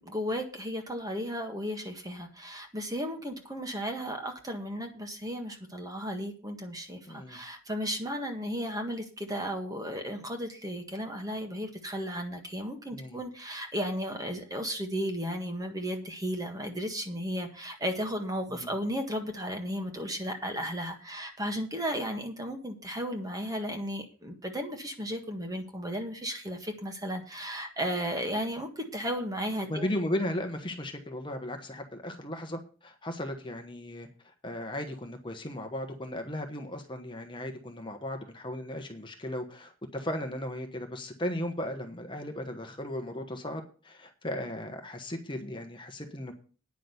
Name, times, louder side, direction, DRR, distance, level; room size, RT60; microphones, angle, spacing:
voice 1, 0.0-29.9, equal, 15° right, 4 dB, 1.6 m, -34 dB
voice 2, 7.1-7.4 12.9-13.2 18.5-18.7 29.7-34.1 34.4-46.3, left 1 dB, 25° left, 4 dB, 1.2 m, -36 dB
9.5 x 6.3 x 7.9 m, 0.38 s
head